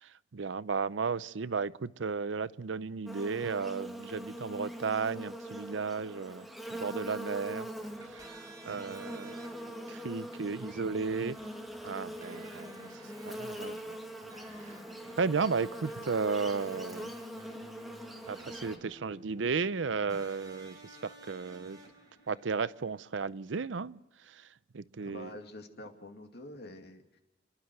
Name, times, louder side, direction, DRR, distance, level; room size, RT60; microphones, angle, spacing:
voice 1, 0.0-7.7 8.0-9.5 9.9-11.4 11.8-12.9 13.3-14.0 14.5-14.7 15.2-17.1 18.3-21.8 22.3-24.5 24.7-25.3, right 5 dB, 90° right, 17 dB, 0.6 m, -34 dB
Buzz, 3.1-18.8, right 1 dB, ahead, 1.9 m, -43 dB
sound 1, 7.8-23.0, right 1 dB, 20° right, 5.1 m, -54 dB
voice 2, 25.0-27.2, left 1 dB, 60° left, 4 dB, 2.5 m, -47 dB
29.0 x 11.5 x 7.7 m, 1.0 s
head